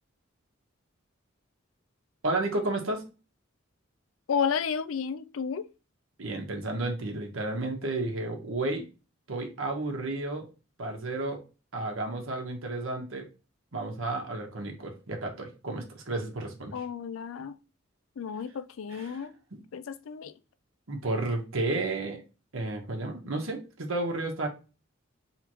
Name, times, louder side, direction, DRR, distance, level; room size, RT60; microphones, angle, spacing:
voice 1, 2.2-3.0 6.2-8.8 9.3-10.5 10.8-11.4 11.7-13.2 13.7-16.8 18.9-19.2 19.5-19.6 20.9-22.2 22.5-24.5, right 2 dB, 90° right, 1.3 m, -32 dB
voice 2, 4.3-5.7 16.7-17.5 18.2-19.3 19.7-20.3, left 6 dB, 85° left, 0.4 m, -32 dB
3.5 x 3.0 x 4.8 m
head